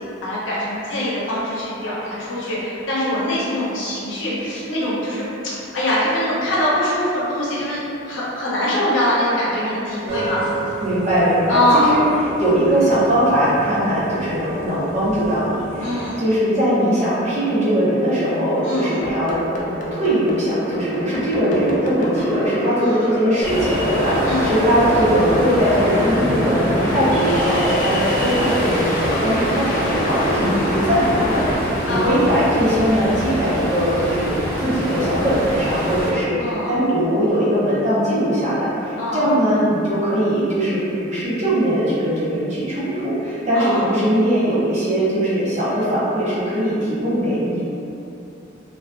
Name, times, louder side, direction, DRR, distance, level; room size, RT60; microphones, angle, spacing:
voice 1, 0.0-7.8 8.0-10.5 11.5-12.0 15.8-16.2 18.6-19.0 22.8-23.1 24.2-24.6 30.5-30.8 31.8-32.2 36.4-36.7 39.0-39.3 43.5-43.9, left 1 dB, 85° left, -7 dB, 0.6 m, -23 dB
sound 1, 10.1-16.1, right 3 dB, 90° right, 0.4 m, -32 dB
voice 2, 10.8-12.0 12.4-19.4 19.6-47.6, equal, 40° right, -10 dB, 0.7 m, -20 dB
sound 2, 19.0-31.6, left 1 dB, 45° left, 0.3 m, -25 dB
Ocean, 23.4-36.1, equal, 5° left, 1.0 m, -25 dB
2.4 x 2.2 x 2.2 m, 2.8 s
head